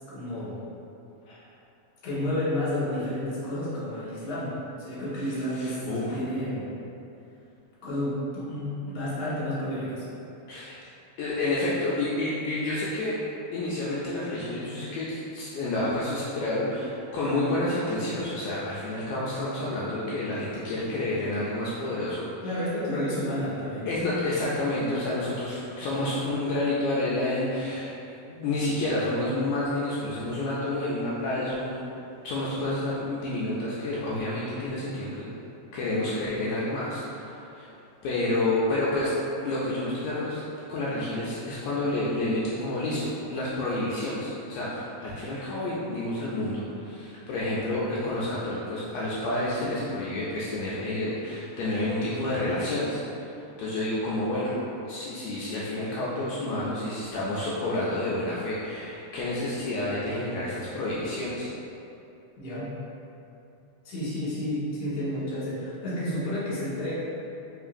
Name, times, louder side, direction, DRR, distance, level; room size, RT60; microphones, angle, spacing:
voice 1, 0.1-0.6 2.0-6.7 7.8-10.0 22.4-23.9 62.4-62.7 63.8-66.9, left 1 dB, 50° left, -10 dB, 1.2 m, -31 dB
voice 2, 5.3-6.2 10.5-10.7 11.2-13.2 13.5-22.3 23.9-32.0 32.2-35.3 35.7-37.7 38.0-39.1 39.4-40.4 40.7-53.0 53.6-54.5 54.9-61.5, left 1 dB, 90° left, -8 dB, 1.5 m, -29 dB
4.7 x 3.0 x 2.5 m, 2.8 s
omnidirectional pair, 3.7 m